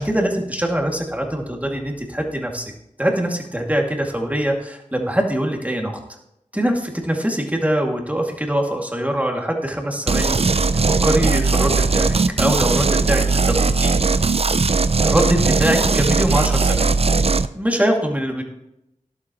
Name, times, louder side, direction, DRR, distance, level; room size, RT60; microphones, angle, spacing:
voice 1, 0.0-2.7 3.0-5.9 6.5-14.2 15.0-16.9 17.5-18.4, right 1 dB, 10° right, 1 dB, 2.3 m, -23 dB
sound 1, 10.1-17.5, right 4 dB, 50° right, 0.5 m, -18 dB
12.5 x 11.5 x 3.0 m, 0.83 s
wide cardioid pair, 50°, 13 cm